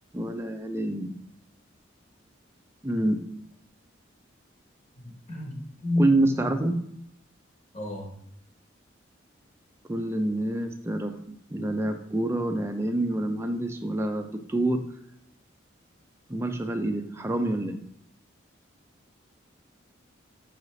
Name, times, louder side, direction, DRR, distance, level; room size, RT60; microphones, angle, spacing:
voice 1, 0.1-1.1 2.8-3.2 6.0-6.7 9.9-14.8 16.3-17.8, right 1 dB, 15° right, 5 dB, 0.4 m, -27 dB
voice 2, 4.9-6.1 7.7-8.1, left 1 dB, 35° left, -2 dB, 0.9 m, -30 dB
5.6 x 2.5 x 3.1 m, 0.75 s
head